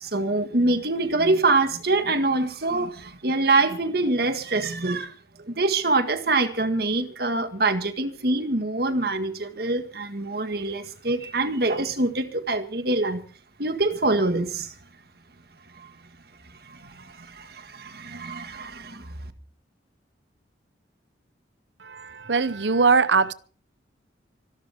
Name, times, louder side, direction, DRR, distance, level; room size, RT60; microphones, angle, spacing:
voice 1, 0.0-5.1 5.4-13.2 13.6-14.7 15.8-15.9 16.6-19.1, right 2 dB, 55° right, 1.8 m, -25 dB
voice 2, 21.8-23.3, right 4 dB, 75° right, 0.8 m, -21 dB
26.0 x 12.0 x 3.6 m
head